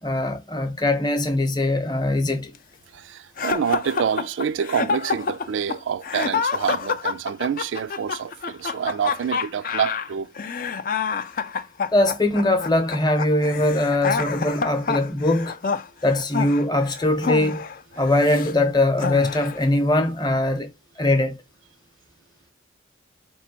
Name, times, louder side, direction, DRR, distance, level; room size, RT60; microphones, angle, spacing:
voice 1, 0.0-2.5 11.9-15.6 16.0-17.7 18.0-20.7 21.0-21.4, left 1 dB, 20° left, 0.7 m, -21 dB
voice 2, 2.9-10.3, right 7 dB, 80° right, 0.4 m, -27 dB
sound 1, 3.4-18.5 19.0-19.7, left 5 dB, 45° left, 0.4 m, -28 dB
4.4 x 3.1 x 2.8 m
head